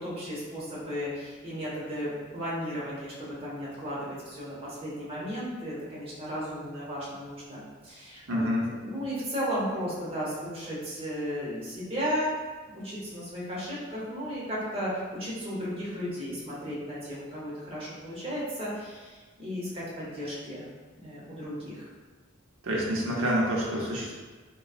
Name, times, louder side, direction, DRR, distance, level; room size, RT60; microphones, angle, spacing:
voice 1, 0.0-12.3 12.7-20.7 21.0-21.9, equal, 30° right, -7 dB, 0.9 m, -35 dB
voice 2, 8.3-8.6 22.6-24.1, equal, 85° right, -4 dB, 0.8 m, -27 dB
3.9 x 2.3 x 2.4 m, 1.3 s
head